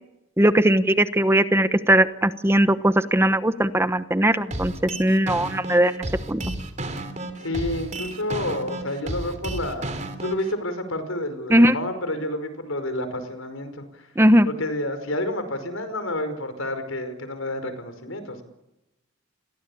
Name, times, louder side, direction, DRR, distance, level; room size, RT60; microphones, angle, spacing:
voice 1, 0.4-6.4 11.5-11.8 14.2-14.5, right 1 dB, 10° right, 11 dB, 1.0 m, -19 dB
sound 1, 4.5-10.5, right 1 dB, 35° right, 3.6 m, -32 dB
voice 2, 7.4-14.1 14.5-18.4, left 1 dB, 80° left, 10 dB, 5.3 m, -29 dB
30.0 x 22.0 x 8.6 m, 0.93 s
head